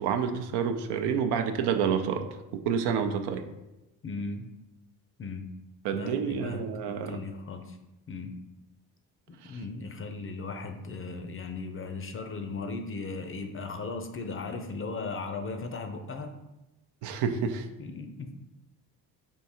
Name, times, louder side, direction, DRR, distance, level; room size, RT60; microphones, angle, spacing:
voice 1, 0.0-2.2 2.5-3.5 5.8-7.2 9.4-9.5 17.0-17.7, right 7 dB, 70° right, 7 dB, 0.6 m, -28 dB
voice 2, 4.0-4.5 5.2-5.4 5.9-7.8 8.1-8.3 9.3-16.3 17.8-18.3, left 3 dB, 30° left, 6 dB, 0.5 m, -37 dB
3.6 x 2.7 x 4.3 m, 0.97 s
supercardioid pair, 75°, 41 cm